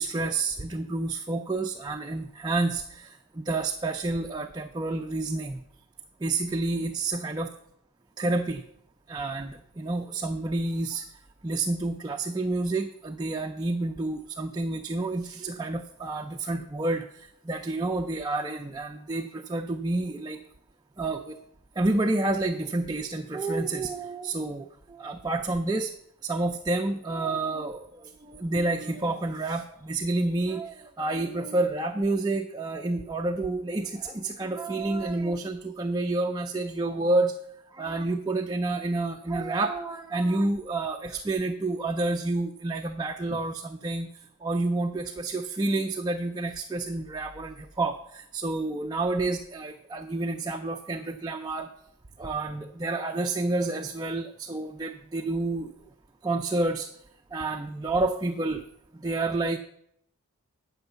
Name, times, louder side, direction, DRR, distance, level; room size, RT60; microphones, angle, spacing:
voice 1, 0.0-5.6 6.2-7.5 8.2-8.6 9.1-11.1 11.4-20.4 21.0-21.4 21.8-25.9 26.2-37.3 37.7-44.1 44.4-51.7 52.2-55.7 56.2-56.9 57.3-58.6 58.9-59.6, right 2 dB, 20° right, 3 dB, 0.4 m, -29 dB
9.0 x 6.3 x 6.8 m, 0.73 s
head